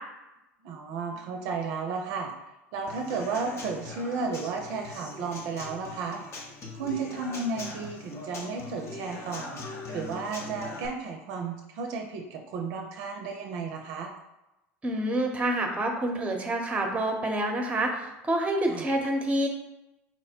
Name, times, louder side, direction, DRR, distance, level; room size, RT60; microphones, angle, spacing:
voice 1, 0.6-2.3 2.7-6.2 6.7-9.6 9.9-14.1 18.7-19.0, right 4 dB, 60° right, 2 dB, 0.5 m, -33 dB
Human voice / Acoustic guitar / Drum, 2.9-10.9, left 2 dB, 40° left, 0.8 m, -41 dB
voice 2, 14.8-19.5, right 1 dB, 15° right, 3 dB, 0.8 m, -27 dB
4.3 x 2.1 x 4.3 m, 0.95 s
hypercardioid pair, 85°, 7 cm